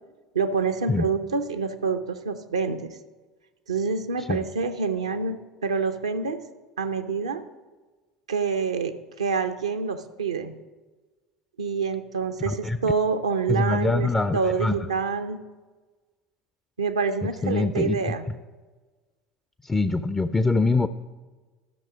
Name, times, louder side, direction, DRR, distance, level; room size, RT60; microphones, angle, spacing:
voice 1, 0.3-3.0 3.7-6.4 6.8-7.4 8.3-10.6 11.6-15.4 16.8-18.3, right 5 dB, 80° right, 9 dB, 0.6 m, -27 dB
voice 2, 12.5-12.8 13.5-14.8 17.4-18.0 19.6-20.9, left 3 dB, 15° left, 11 dB, 0.4 m, -24 dB
12.5 x 5.9 x 5.1 m, 1.3 s
figure-of-eight pair, 70°, 3 cm